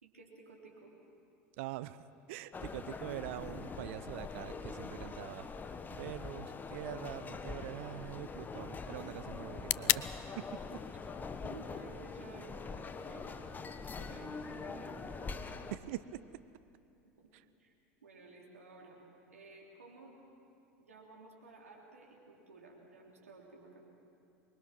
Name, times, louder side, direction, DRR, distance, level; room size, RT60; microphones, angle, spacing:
voice 1, 0.0-0.9 11.4-13.7 14.0-15.7 17.2-17.3 17.6-17.7 18.0-19.0 19.3-20.1 20.8-23.8, right 3 dB, 90° right, -1 dB, 3.5 m, -54 dB
voice 2, 1.6-5.5 5.9-10.1 10.4-10.8 15.7-16.2 17.3-17.4, right 15 dB, 65° right, 15 dB, 0.7 m, -44 dB
sound 1, 2.5-15.8, left 4 dB, 25° left, 1.2 m, -44 dB
sound 2, 5.6-13.6, left 19 dB, 60° left, 0.5 m, -41 dB
24.5 x 22.0 x 6.1 m, 2.6 s
hypercardioid pair, 85°, 8 cm